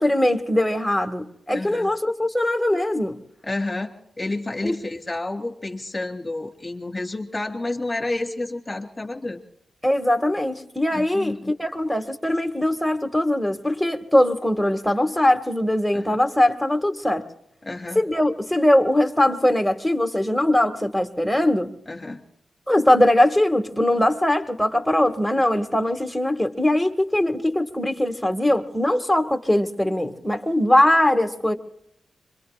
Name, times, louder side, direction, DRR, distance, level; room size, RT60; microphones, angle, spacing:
voice 1, 0.0-3.2 4.6-4.8 9.8-17.3 18.0-21.7 22.7-31.5, left 1 dB, ahead, 1.9 m, -21 dB
voice 2, 1.5-1.9 3.4-9.4 10.9-11.5 15.9-16.2 17.6-18.0 21.9-22.2, left 2 dB, 25° left, 2.8 m, -30 dB
25.5 x 23.5 x 2.4 m
cardioid pair, 60°, 0 cm